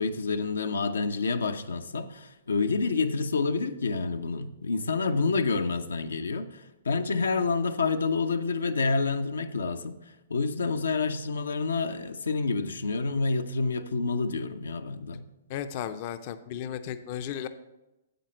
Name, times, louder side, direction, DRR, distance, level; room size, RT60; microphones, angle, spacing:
voice 1, 0.0-9.9 10.3-15.2, left 4 dB, 90° left, 8 dB, 0.7 m, -28 dB
voice 2, 15.5-17.5, left 9 dB, 45° left, 11 dB, 0.5 m, -34 dB
9.1 x 7.6 x 4.4 m, 1.0 s
hypercardioid pair, 135°, 0 cm